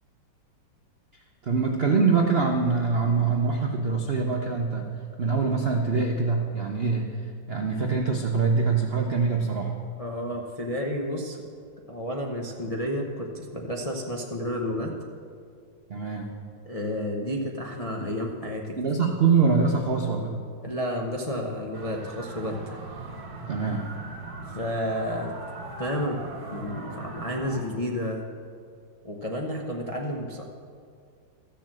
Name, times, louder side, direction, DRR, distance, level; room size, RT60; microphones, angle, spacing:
voice 1, 1.4-4.9 5.2-7.1 7.5-9.7 15.9-16.3 18.0-18.1 18.8-20.4 23.4-23.9, right 4 dB, 70° right, 2 dB, 0.5 m, -24 dB
voice 2, 10.0-11.4 11.9-14.9 16.6-18.8 20.6-22.9 24.5-25.4 25.8-28.3 29.0-30.4, equal, 70° left, -1 dB, 0.3 m, -31 dB
sound 1, 21.7-27.6, right 2 dB, 30° right, 1.3 m, -40 dB
13.5 x 6.9 x 7.5 m, 2.3 s
omnidirectional pair, 2.2 m